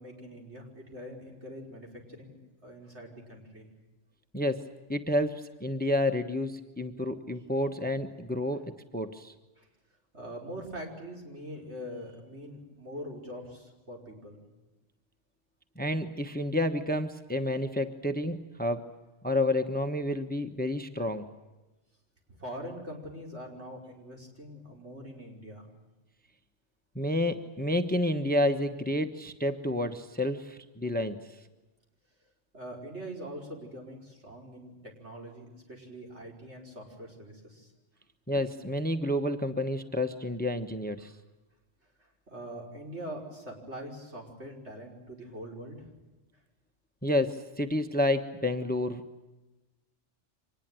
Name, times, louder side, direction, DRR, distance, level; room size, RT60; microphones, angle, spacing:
voice 1, 0.0-2.4 2.6-3.7 9.6-9.7 10.1-14.4 22.4-25.7 32.5-37.7 41.0-41.1 42.0-45.9, equal, 65° right, 0 dB, 5.7 m, -43 dB
voice 2, 4.3-9.3 15.8-18.9 19.2-21.3 26.9-31.2 38.3-41.1 47.0-49.0, left 1 dB, 10° left, 8 dB, 1.1 m, -30 dB
25.5 x 20.0 x 9.2 m, 1.1 s
omnidirectional pair, 1.2 m